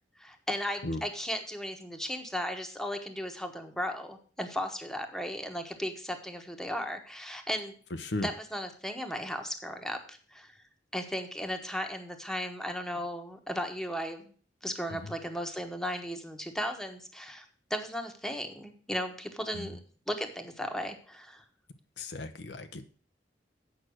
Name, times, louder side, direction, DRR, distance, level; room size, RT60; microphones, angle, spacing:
voice 1, 0.2-7.7 8.2-10.5 10.9-14.3 14.6-19.8 20.1-21.4, equal, 5° left, 5 dB, 1.2 m, -36 dB
voice 2, 22.0-22.8, left 2 dB, 80° left, 8 dB, 0.9 m, -36 dB
8.6 x 6.0 x 6.3 m, 0.42 s
head